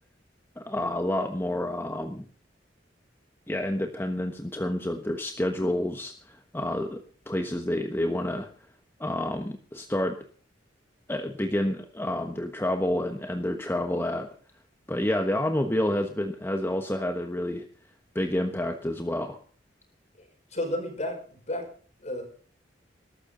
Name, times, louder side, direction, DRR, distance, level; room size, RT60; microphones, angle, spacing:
voice 1, 0.6-2.3 3.5-8.5 9.0-10.2 11.1-14.3 14.9-17.7 18.1-19.4, left 1 dB, 15° left, 5 dB, 1.2 m, -29 dB
voice 2, 20.2-21.7 22.0-22.2, left 1 dB, 40° left, 4 dB, 5.5 m, -33 dB
20.5 x 13.0 x 3.9 m, 0.43 s
head